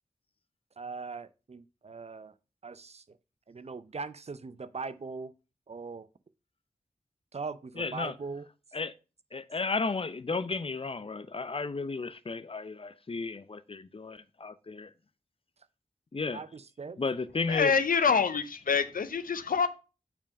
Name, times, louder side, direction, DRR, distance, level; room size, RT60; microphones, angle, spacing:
voice 1, 0.8-2.3 2.6-3.0 3.5-5.3 5.7-6.1 7.3-8.4 16.3-17.0, right 4 dB, 50° right, 0.6 m, -40 dB
voice 2, 7.8-8.1 8.7-8.9 9.3-14.9 16.1-16.4 17.0-17.7, left 4 dB, 40° left, 0.6 m, -33 dB
voice 3, 17.5-19.7, left 6 dB, 85° left, 0.6 m, -26 dB
5.9 x 4.5 x 5.3 m
cardioid pair, 50°, 14 cm